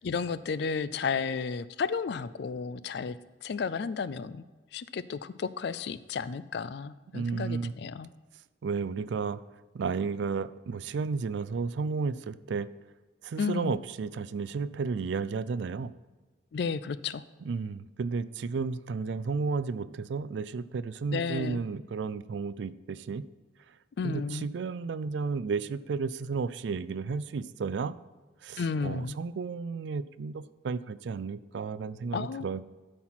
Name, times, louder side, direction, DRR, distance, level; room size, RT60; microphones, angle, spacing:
voice 1, 0.0-4.4 4.7-8.1 13.4-13.8 16.5-17.2 21.1-21.6 24.0-24.5 28.6-29.2 32.1-32.5, left 5 dB, 55° left, 15 dB, 0.4 m, -33 dB
voice 2, 7.1-7.7 8.6-9.4 9.7-12.7 13.2-15.9 17.4-23.2 24.0-27.9 28.4-32.6, right 5 dB, 65° right, 15 dB, 0.3 m, -33 dB
12.5 x 4.4 x 5.8 m, 1.3 s
head